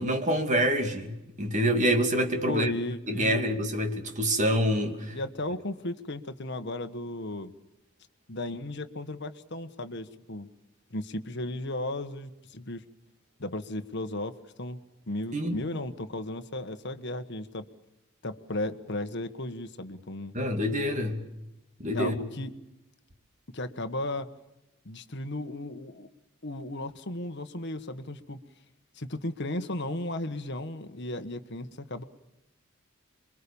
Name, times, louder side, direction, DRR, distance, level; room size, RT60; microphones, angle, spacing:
voice 1, 0.0-2.7 3.1-5.2 15.3-15.6 20.3-21.2 21.8-22.2, equal, 35° right, 2.7 m, -26 dB
voice 2, 2.5-3.4 5.1-7.5 8.3-10.5 10.9-12.8 13.4-17.7 18.2-20.3 21.9-22.5 23.5-24.3 24.8-26.1 26.4-28.4 28.9-32.0, left 1 dB, 50° left, 1.4 m, -35 dB
27.5 x 23.0 x 7.1 m
head